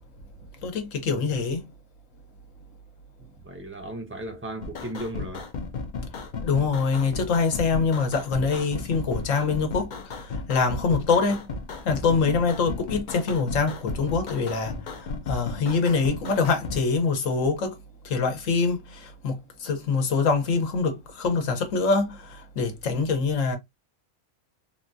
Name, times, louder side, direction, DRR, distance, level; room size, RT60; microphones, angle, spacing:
voice 1, 0.6-1.7 6.1-11.5 11.8-17.8 18.0-23.6, left 4 dB, 75° left, 1.2 m, -25 dB
voice 2, 3.2-5.4, right 1 dB, 15° right, 0.5 m, -36 dB
sound 1, 4.6-16.8, left 4 dB, 50° left, 0.6 m, -35 dB
3.6 x 2.2 x 2.5 m
omnidirectional pair, 1.4 m